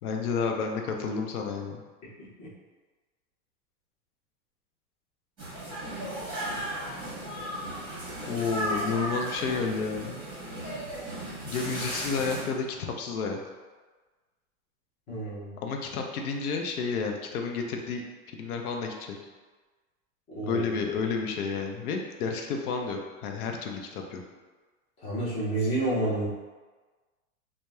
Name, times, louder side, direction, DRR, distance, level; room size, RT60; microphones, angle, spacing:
voice 1, 0.0-1.8 8.3-10.2 11.4-13.4 15.6-18.0 18.3-19.2 20.4-24.2, left 5 dB, 85° left, 2 dB, 0.6 m, -31 dB
voice 2, 2.2-2.5 15.1-15.5 20.3-20.8 25.0-26.3, right 1 dB, 15° left, -9 dB, 0.5 m, -30 dB
sound 1, 5.4-12.4, right 1 dB, 10° right, 0.9 m, -35 dB
2.9 x 2.1 x 2.2 m, 1.3 s
supercardioid pair, 150°, 43 cm